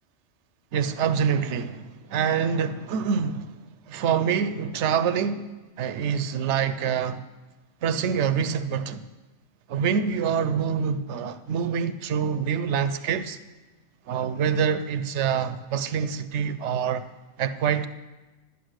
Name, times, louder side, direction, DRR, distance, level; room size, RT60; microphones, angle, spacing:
voice 1, 0.7-3.5 3.9-5.5 5.8-7.2 7.8-9.0 9.7-13.4 14.1-17.0 17.4-17.9, right 7 dB, 70° right, 0.9 m, -26 dB
11.0 x 8.2 x 6.4 m
omnidirectional pair, 1.3 m